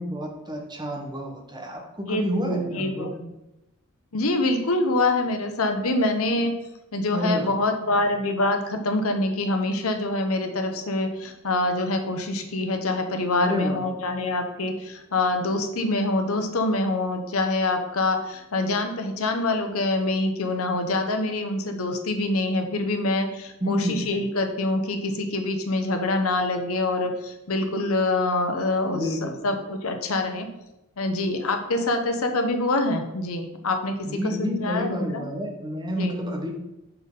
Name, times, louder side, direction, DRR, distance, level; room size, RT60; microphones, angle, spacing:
voice 1, 0.0-3.1 7.1-7.5 13.4-13.9 23.6-24.1 28.9-29.3 34.1-36.6, equal, 20° right, 1 dB, 1.1 m, -29 dB
voice 2, 2.1-3.3 4.1-6.5 6.9-30.5 31.0-34.0 34.2-35.3 35.9-36.2, left 2 dB, 85° left, 6 dB, 0.9 m, -25 dB
5.8 x 5.6 x 3.7 m, 0.94 s
head